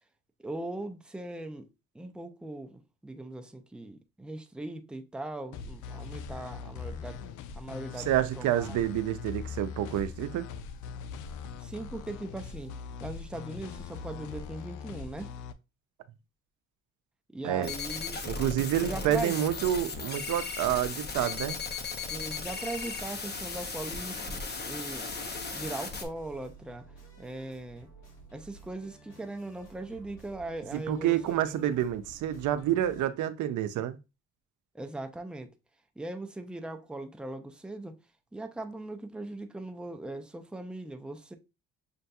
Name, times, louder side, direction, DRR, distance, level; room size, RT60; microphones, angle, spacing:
voice 1, 0.4-1.7 1.9-7.2 7.6-8.8 11.6-15.4 17.3-18.2 18.6-19.4 22.1-24.4 24.7-25.1 25.5-27.9 28.3-31.8 34.7-35.5 36.0-38.0 38.3-41.3, right 2 dB, 5° right, 0.5 m, -40 dB
sound 1, 5.5-15.5, left 6 dB, 80° left, 0.5 m, -41 dB
voice 2, 8.1-10.5 17.4-17.7 18.3-21.6 30.9-34.0, right 11 dB, 75° right, 0.5 m, -28 dB
sound 2, 17.6-26.0, left 4 dB, 35° left, 0.9 m, -36 dB
sound 3, 22.3-33.0, right 1 dB, 55° left, 2.7 m, -53 dB
6.5 x 2.6 x 2.3 m
cardioid pair, 90°, 30 cm